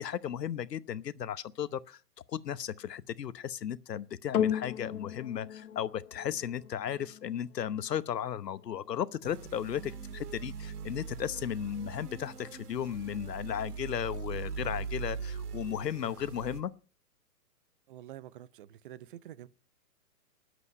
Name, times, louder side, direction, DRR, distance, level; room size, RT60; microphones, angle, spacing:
voice 1, 0.0-2.0 2.3-16.7, left 9 dB, 90° left, 1.0 m, -35 dB
sound 1, 4.3-12.9 13.6-13.7, left 9 dB, 65° left, 1.2 m, -38 dB
sound 2, 9.2-16.6, right 6 dB, 75° right, 2.2 m, -41 dB
voice 2, 17.9-19.5, right 12 dB, 35° right, 0.6 m, -47 dB
19.5 x 8.2 x 5.5 m
hypercardioid pair, 140°, 48 cm